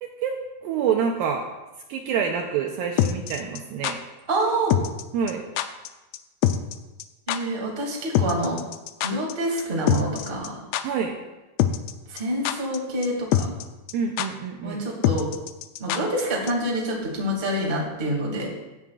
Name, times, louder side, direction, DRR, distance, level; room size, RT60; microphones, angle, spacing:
voice 1, 0.0-0.4 0.6-1.5 1.9-4.0 5.1-5.4 10.8-11.2 13.9-14.9, right 7 dB, 90° right, 2 dB, 2.0 m, -27 dB
sound 1, 3.0-3.9 4.7-5.0 5.3-5.4 5.6-5.9 6.1-6.2 6.4-6.7 7.0-7.1 7.3-7.4 8.1-9.3 9.6-9.7 9.9-10.5 10.7-10.8 11.6-11.9 12.2-12.8 13.0-13.1 13.3-13.6 13.9-14.0 14.2-14.3 15.0-16.2 16.5-16.6, left 11 dB, 85° left, 2.7 m, -23 dB
voice 2, 4.3-4.7 7.3-8.6 9.0-10.6 12.1-13.5 14.6-15.3 15.8-18.5, right 1 dB, 20° right, -2 dB, 1.5 m, -27 dB
16.0 x 11.5 x 2.4 m, 1.1 s
omnidirectional pair, 5.0 m